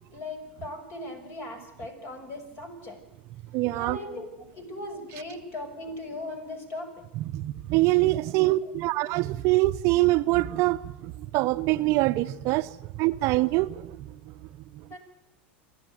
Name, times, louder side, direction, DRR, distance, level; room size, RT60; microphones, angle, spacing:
voice 1, 0.1-3.0 3.8-6.9 8.5-8.7 9.0-9.1 14.9-15.0, left 2 dB, 40° left, 5.8 m, -38 dB
voice 2, 3.5-4.0 7.2-14.1, right 19 dB, 55° right, 0.7 m, -24 dB
27.5 x 11.5 x 9.3 m
hypercardioid pair, 90°, 6 cm